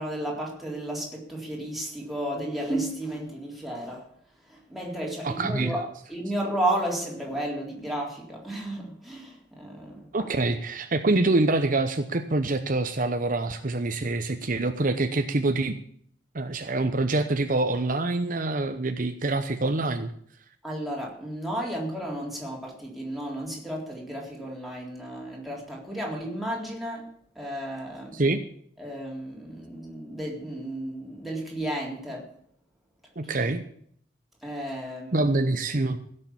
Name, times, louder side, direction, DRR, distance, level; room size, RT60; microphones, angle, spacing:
voice 1, 0.0-4.1 4.5-10.3 20.6-27.1 27.4-28.2 28.8-32.3 33.2-33.3 34.4-35.3, right 1 dB, ahead, 3.7 m, -33 dB
voice 2, 5.2-5.9 10.1-15.7 16.3-20.1 28.1-28.4 33.2-33.6 35.1-36.0, right 2 dB, 50° right, 0.9 m, -25 dB
16.5 x 6.7 x 8.6 m
head